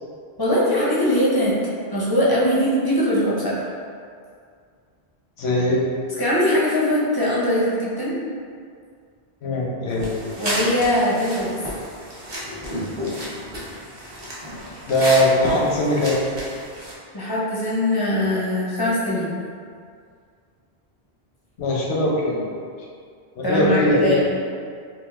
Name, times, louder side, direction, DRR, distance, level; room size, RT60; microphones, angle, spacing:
voice 1, 0.4-1.6 1.9-3.7 6.2-8.1 10.4-11.5 17.1-19.4 23.4-24.3, left 1 dB, 30° left, -7 dB, 0.5 m, -21 dB
voice 2, 5.4-5.8 9.4-10.1 14.9-16.2 21.6-22.5 23.3-24.2, left 1 dB, 90° left, -4 dB, 0.9 m, -20 dB
sound 1, 9.9-16.9, equal, 35° right, 0.5 m, -31 dB
3.9 x 2.4 x 2.4 m, 2.2 s
omnidirectional pair, 1.1 m